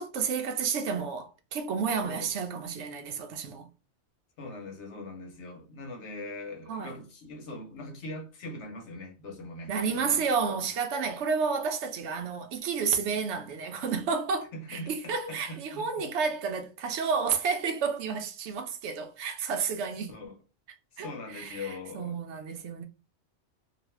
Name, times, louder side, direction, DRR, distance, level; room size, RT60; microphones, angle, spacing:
voice 1, 0.0-3.7 6.7-6.9 9.7-20.1 21.0-21.7 21.9-22.8, right 5 dB, 75° right, 0.9 m, -31 dB
voice 2, 4.4-10.3 14.5-16.1 20.1-20.4 20.9-22.2, left 2 dB, 75° left, 1.0 m, -41 dB
2.5 x 2.3 x 3.1 m
omnidirectional pair, 1.2 m